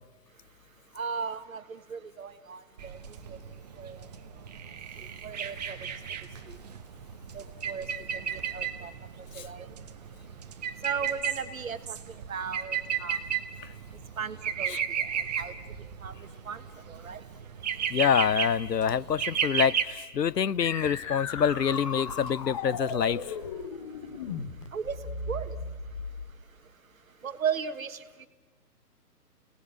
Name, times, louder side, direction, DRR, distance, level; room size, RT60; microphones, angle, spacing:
voice 1, 0.9-3.0 3.3-3.4 3.8-4.1 5.0-5.8 6.4-6.6 7.3-7.9 8.1-8.9 9.2-9.7 10.8-13.2 14.2-15.5 16.0-17.2 24.7-25.6 27.2-28.3, right 6 dB, 55° right, 11 dB, 1.4 m, -37 dB
sound 1, 2.8-19.8, right 8 dB, 25° right, 0.9 m, -34 dB
voice 2, 17.9-23.4, left 8 dB, 85° left, 21 dB, 0.6 m, -26 dB
sound 2, 20.6-26.3, left 4 dB, 20° left, 0.8 m, -36 dB
30.0 x 18.5 x 6.4 m, 1.3 s
figure-of-eight pair, 135°, 48 cm